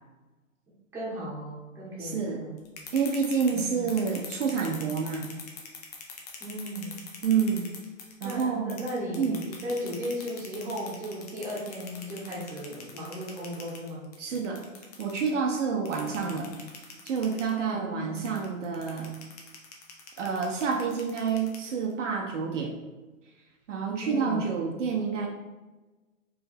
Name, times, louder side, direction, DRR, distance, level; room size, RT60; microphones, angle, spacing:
voice 1, 0.9-2.5 3.5-3.9 6.4-7.0 8.2-14.0 17.7-18.3 24.0-24.5, equal, 5° right, -7 dB, 1.1 m, -36 dB
voice 2, 2.0-2.4 2.9-5.3 7.2-7.7 8.2-8.8 9.2-9.5 14.2-14.7 15.0-16.5 17.0-19.1 20.2-22.8 23.7-25.3, right 6 dB, 60° right, 1 dB, 0.8 m, -28 dB
sound 1, 2.6-8.4 8.7-15.3 15.9-17.5 18.2-21.9, left 6 dB, 30° left, 0.6 m, -43 dB
4.7 x 3.3 x 3.4 m, 1.2 s
hypercardioid pair, 140°, 41 cm